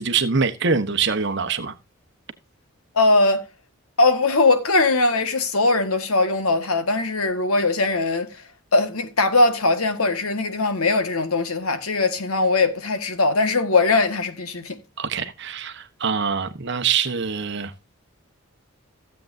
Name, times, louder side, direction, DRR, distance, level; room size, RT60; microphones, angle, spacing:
voice 1, 0.0-1.7 15.0-17.7, right 5 dB, 55° right, 1.1 m, -24 dB
voice 2, 3.0-3.4 4.0-8.3 8.7-14.8, left 3 dB, 85° left, 1.7 m, -20 dB
15.5 x 7.8 x 2.7 m
head